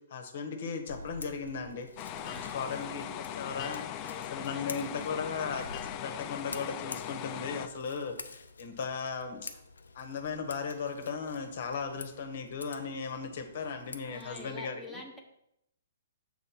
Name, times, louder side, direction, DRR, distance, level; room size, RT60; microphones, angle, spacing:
voice 1, 0.1-3.8 4.1-9.5 9.9-15.0, left 5 dB, 60° left, 5 dB, 1.1 m, -37 dB
Scissors, 0.9-14.6, left 3 dB, 80° left, 0.6 m, -48 dB
sound 1, 2.0-7.7, left 11 dB, 30° left, 0.3 m, -40 dB
voice 2, 2.1-2.8 3.5-5.2 14.0-15.2, left 2 dB, ahead, 0 dB, 1.1 m, -48 dB
6.6 x 3.4 x 5.8 m, 0.79 s
hypercardioid pair, 125°, 0 cm